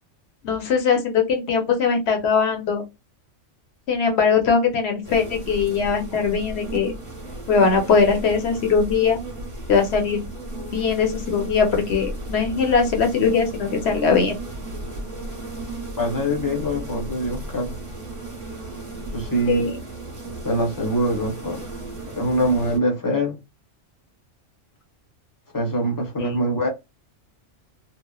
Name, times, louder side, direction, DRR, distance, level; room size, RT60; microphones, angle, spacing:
voice 1, 0.4-2.8 3.9-6.9 7.5-9.2 9.7-10.2 10.7-14.3 19.5-19.8 26.2-26.4, left 5 dB, 65° left, 1.0 m, -20 dB
sound 1, 5.0-22.8, right 2 dB, 30° right, 0.9 m, -34 dB
voice 2, 16.0-17.7 19.1-19.7 20.4-21.6 22.1-23.4 25.5-26.7, equal, 20° left, 0.7 m, -24 dB
3.0 x 2.1 x 2.2 m
omnidirectional pair, 1.3 m